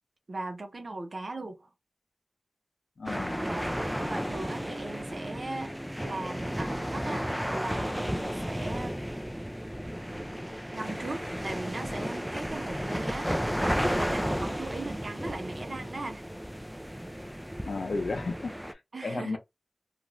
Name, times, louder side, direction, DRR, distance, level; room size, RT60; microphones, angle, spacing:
voice 1, 0.3-1.7 3.4-3.7 4.0-5.7 6.0-7.2 7.5-9.0 10.7-16.2 18.9-19.4, right 2 dB, 70° right, 0.5 m, -39 dB
voice 2, 3.0-3.5 17.7-19.4, left 3 dB, 85° left, 0.6 m, -34 dB
sound 1, 3.1-18.7, equal, 5° right, 0.4 m, -33 dB
2.5 x 2.3 x 3.0 m
cardioid pair, 45°, 0 cm